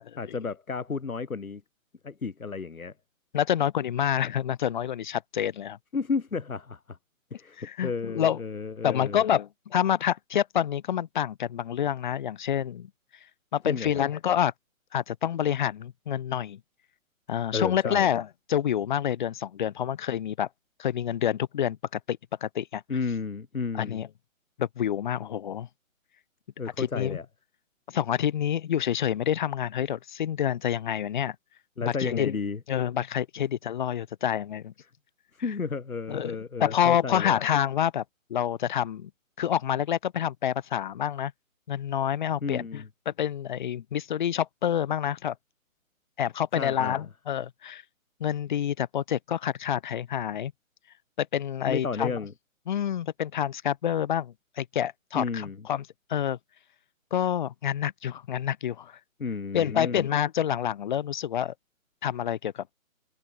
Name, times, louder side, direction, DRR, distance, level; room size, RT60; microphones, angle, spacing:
voice 1, 0.2-1.6 2.0-2.9 5.9-7.0 7.3-9.2 13.7-14.0 17.5-18.1 22.9-24.0 26.6-27.3 31.8-32.6 35.4-37.4 42.4-42.9 46.5-47.1 51.7-52.3 55.1-55.6 59.2-60.0, left 4 dB, 80° left, 4.1 m, -32 dB
voice 2, 3.3-5.8 7.6-8.4 8.8-12.9 13.5-14.5 14.9-16.6 17.3-20.5 20.8-21.8 22.1-22.8 23.8-24.1 24.6-25.7 26.8-27.2 27.9-31.3 31.8-32.4 32.7-34.7 36.1-38.0 38.3-39.1 39.4-41.3 41.7-45.3 46.2-47.8 48.2-50.5 51.2-52.1 52.7-56.4 57.1-59.0 59.5-61.5 62.0-62.7, left 10 dB, 35° left, 1.6 m, -28 dB
hypercardioid pair, 155°, 41 cm